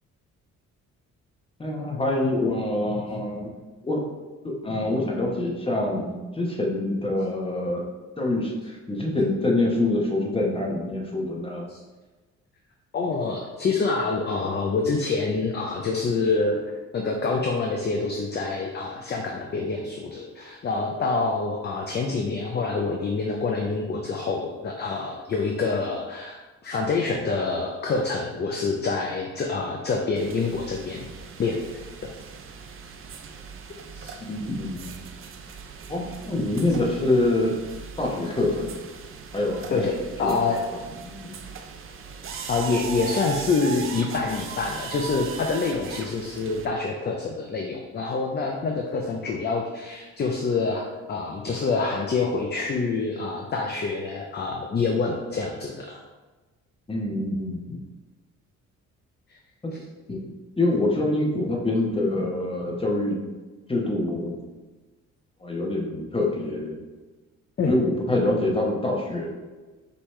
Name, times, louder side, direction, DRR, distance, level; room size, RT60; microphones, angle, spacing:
voice 1, 1.6-3.5 3.8-4.1 4.4-7.8 8.2-11.7 34.3-35.0 35.9-37.6 38.0-38.7 39.3-39.8 40.2-40.3 41.0-41.4 56.9-57.8 59.6-59.7 60.1-60.2 60.6-63.2 63.7-64.4 65.4-66.8 67.7-69.3, left 2 dB, 20° left, -1 dB, 1.0 m, -25 dB
voice 2, 12.9-16.6 16.9-31.1 31.4-31.6 33.9-34.1 39.7-40.6 42.5-56.0 59.3-59.4 67.6-67.7, left 4 dB, 35° left, 1 dB, 0.5 m, -26 dB
sound 1, 30.2-46.7, right 6 dB, 45° right, 0.5 m, -39 dB
5.3 x 3.0 x 3.2 m, 1.2 s
cardioid pair, 90°, 30 cm